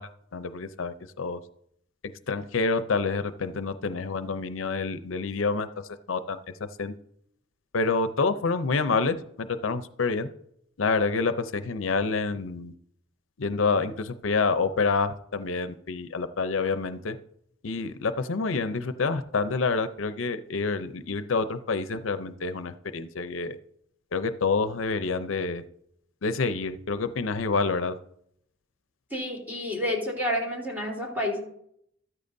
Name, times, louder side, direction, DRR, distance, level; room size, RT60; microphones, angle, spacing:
voice 1, 0.0-1.4 2.0-5.7 6.1-7.0 7.7-10.3 10.8-12.7 13.4-17.2 17.6-23.6 24.1-25.6 26.2-28.0, left 4 dB, 85° left, 11 dB, 0.6 m, -28 dB
voice 2, 29.1-31.4, left 1 dB, 10° right, -2 dB, 3.7 m, -29 dB
14.0 x 13.0 x 2.7 m, 0.72 s
head